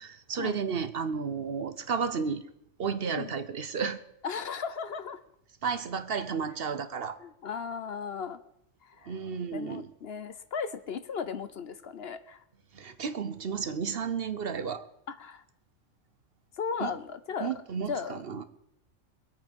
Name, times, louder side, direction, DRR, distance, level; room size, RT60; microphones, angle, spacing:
voice 1, 0.0-2.4 2.8-4.0 5.6-7.2 9.1-9.9 12.7-14.9 16.8-16.9 17.4-18.4, right 6 dB, 55° right, 12 dB, 1.0 m, -32 dB
voice 2, 4.2-5.2 7.2-8.4 8.8-9.1 9.5-12.4 15.1-15.4 16.6-17.5 17.9-18.1, left 6 dB, 60° left, 12 dB, 0.9 m, -36 dB
22.5 x 8.6 x 5.3 m, 0.77 s
omnidirectional pair, 1.3 m